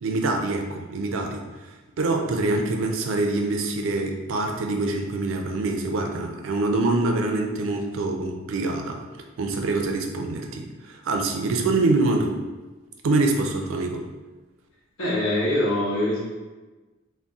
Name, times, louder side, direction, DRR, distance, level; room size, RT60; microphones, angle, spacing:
voice 1, 0.0-1.4 2.0-9.0 9.4-12.4 13.0-14.1, right 2 dB, 85° right, 3 dB, 0.4 m, -25 dB
voice 2, 15.0-16.2, left 1 dB, 85° left, -5 dB, 0.9 m, -23 dB
2.6 x 2.1 x 3.5 m, 1.2 s
head